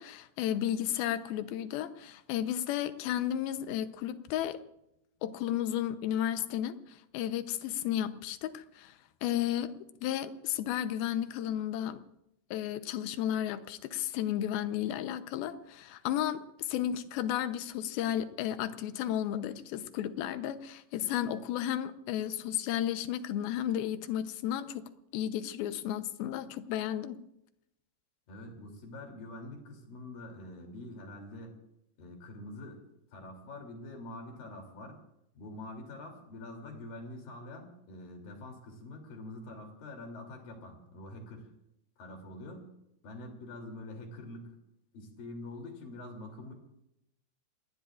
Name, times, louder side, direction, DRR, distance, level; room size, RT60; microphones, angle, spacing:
voice 1, 0.0-4.6 5.2-9.0 9.2-9.7 10.0-12.0 12.5-27.2, left 11 dB, 75° left, 10 dB, 2.7 m, -33 dB
voice 2, 28.3-31.6 32.0-32.8 33.1-35.0 35.3-41.5 42.0-42.7 43.0-44.6 44.9-46.5, left 1 dB, 60° left, 2 dB, 4.7 m, -45 dB
28.5 x 20.0 x 2.5 m, 0.82 s
omnidirectional pair, 4.6 m